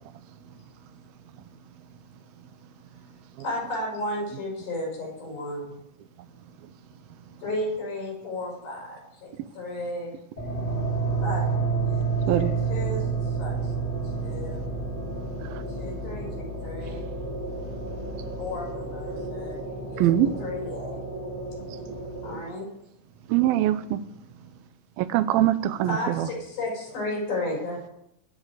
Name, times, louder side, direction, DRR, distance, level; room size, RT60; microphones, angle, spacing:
voice 1, 0.0-3.3 6.3-7.4 10.6-11.2 12.1-12.4 14.4-14.7 15.1-16.0 17.6-18.4 21.6-22.1 23.9-24.5, right 7 dB, 55° right, 4 dB, 2.1 m, -52 dB
voice 2, 3.4-5.7 7.4-10.1 11.2-11.5 11.9-12.0 12.3-13.7 14.0-14.6 15.7-17.1 18.4-19.6 19.9-21.0 22.2-22.7 25.9-27.9, left 1 dB, 75° left, -2 dB, 7.7 m, -33 dB
sound 1, 10.4-22.3, right 4 dB, 15° left, 2.1 m, -30 dB
voice 3, 20.0-20.3 23.3-24.0 25.0-26.3, right 12 dB, 80° right, 13 dB, 2.6 m, -22 dB
21.5 x 8.9 x 4.9 m, 0.81 s
omnidirectional pair, 4.3 m